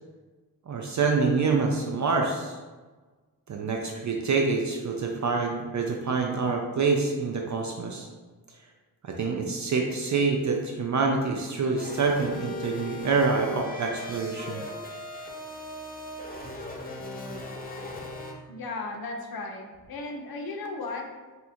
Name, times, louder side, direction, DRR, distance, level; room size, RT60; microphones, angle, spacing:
voice 1, 0.7-2.6 3.5-8.1 9.0-14.6, right 4 dB, 50° right, 1 dB, 0.4 m, -26 dB
sound 1, 11.8-18.3, left 1 dB, 25° left, 0.5 m, -38 dB
voice 2, 18.5-21.1, left 3 dB, 70° left, 2 dB, 0.6 m, -35 dB
2.7 x 2.4 x 4.2 m, 1.3 s
wide cardioid pair, 105°, 38 cm